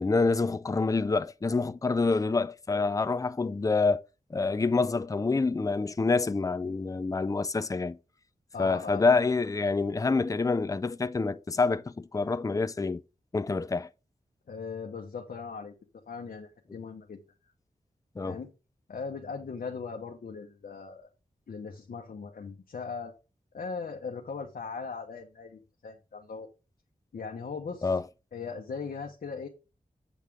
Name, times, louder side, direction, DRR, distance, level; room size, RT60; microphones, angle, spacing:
voice 1, 0.0-4.0 4.3-8.0 8.6-13.0 13.3-13.9 18.2-18.4 27.8-28.1, left 3 dB, 25° left, 0.5 m, -27 dB
voice 2, 8.5-9.2 14.5-15.7 16.1-17.2 18.2-18.5 18.9-21.1 21.5-23.1 23.5-26.5 27.1-27.9 28.3-29.5, left 5 dB, 80° left, 1.1 m, -39 dB
8.3 x 3.6 x 6.1 m
wide cardioid pair, 75°, 15 cm